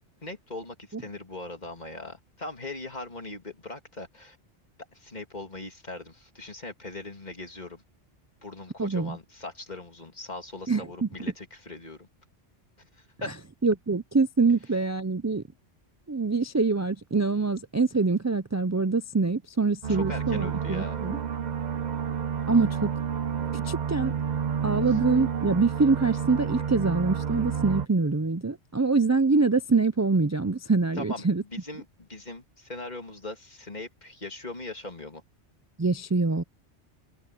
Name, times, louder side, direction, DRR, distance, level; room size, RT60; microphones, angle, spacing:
voice 1, 0.2-4.4 4.9-7.8 8.4-12.1 13.2-13.3 19.9-21.0 30.9-31.2 31.5-35.2, left 2 dB, 40° left, 3.0 m, -40 dB
voice 2, 8.8-9.2 10.7-11.1 13.6-15.4 16.1-21.2 22.5-22.9 23.5-24.1 24.6-31.4 35.8-36.4, right 4 dB, 25° right, 0.3 m, -25 dB
sound 1, 19.8-27.9, right 7 dB, 45° right, 0.8 m, -30 dB
omnidirectional pair, 1.2 m